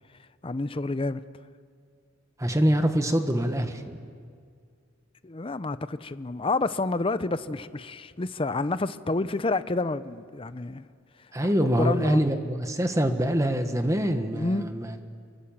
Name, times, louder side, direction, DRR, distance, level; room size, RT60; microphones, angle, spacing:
voice 1, 0.4-1.2 5.2-10.8 11.6-12.2 14.3-14.7, left 2 dB, 25° left, 14 dB, 0.6 m, -29 dB
voice 2, 2.4-4.0 11.3-14.9, equal, 15° right, 7 dB, 1.4 m, -25 dB
27.0 x 23.5 x 7.3 m, 2.1 s
head